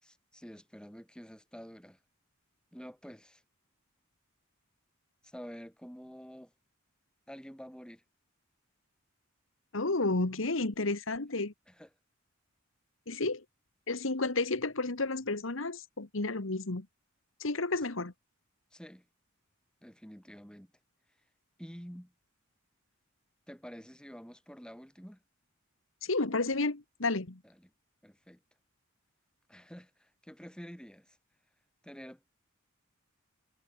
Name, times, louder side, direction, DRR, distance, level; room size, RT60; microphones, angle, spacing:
voice 1, 0.0-2.0 2.7-3.4 5.2-6.5 7.3-8.0 11.7-11.9 18.7-19.1 19.8-20.7 21.6-22.1 23.5-25.2 27.4-27.7 28.0-28.4 29.5-31.2 31.8-32.3, equal, 5° left, 5.6 m, -48 dB
voice 2, 9.7-11.5 13.1-13.4 13.9-16.8 17.4-18.1 26.0-27.4, left 3 dB, 70° left, 1.6 m, -31 dB
head